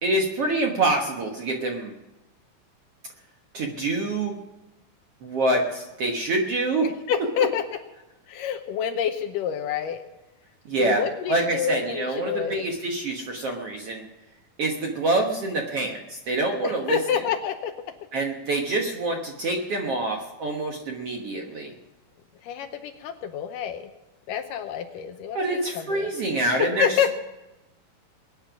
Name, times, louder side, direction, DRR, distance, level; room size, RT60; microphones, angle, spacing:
voice 1, 0.0-1.9 3.5-4.3 5.2-6.9 10.6-11.0 11.3-14.1 14.6-17.0 18.1-21.7 25.3-27.1, right 2 dB, 60° right, 1 dB, 1.7 m, -26 dB
voice 2, 6.8-7.6 8.3-10.0 10.7-12.6 16.6-17.7 22.4-23.9 24.3-26.1 26.6-27.1, left 8 dB, 75° left, 8 dB, 2.1 m, -28 dB
21.5 x 9.8 x 6.0 m, 1.0 s
omnidirectional pair, 4.3 m